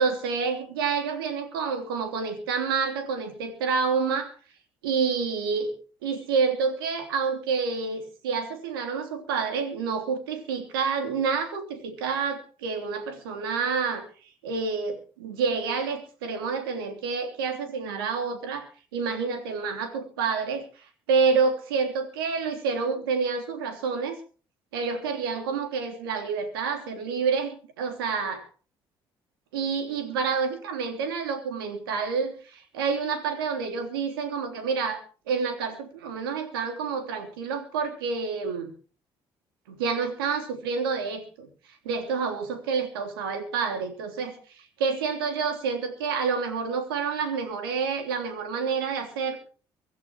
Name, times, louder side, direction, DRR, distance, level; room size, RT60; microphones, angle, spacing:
voice 1, 0.0-4.3 4.8-5.7 6.0-14.0 14.4-18.7 18.9-24.2 24.7-28.4 29.5-38.7 39.7-41.5 41.8-49.4, right 5 dB, 85° right, 7 dB, 3.3 m, -28 dB
24.5 x 13.5 x 3.0 m, 0.37 s
hypercardioid pair, 55°, 12 cm